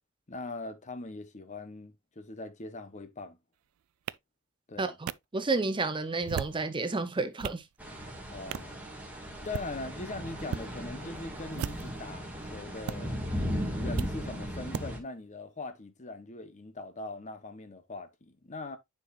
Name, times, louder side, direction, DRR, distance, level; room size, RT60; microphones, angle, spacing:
voice 1, 0.3-3.4 4.7-5.0 8.3-8.8 9.4-13.2 13.7-18.8, left 2 dB, 35° left, 0.9 m, -41 dB
sound 1, 4.1-4.2 5.1-5.2 6.1-6.6 7.1-7.6 8.5-8.7 9.4-9.7 10.4-10.7 11.5-12.0 12.9-13.0 14.0-14.1 14.7-14.8, right 8 dB, 85° right, 0.3 m, -36 dB
voice 2, 4.8-7.6, right 3 dB, 25° right, 0.6 m, -31 dB
sound 2, 7.8-15.0, equal, 5° right, 1.9 m, -37 dB
9.6 x 4.8 x 2.4 m
head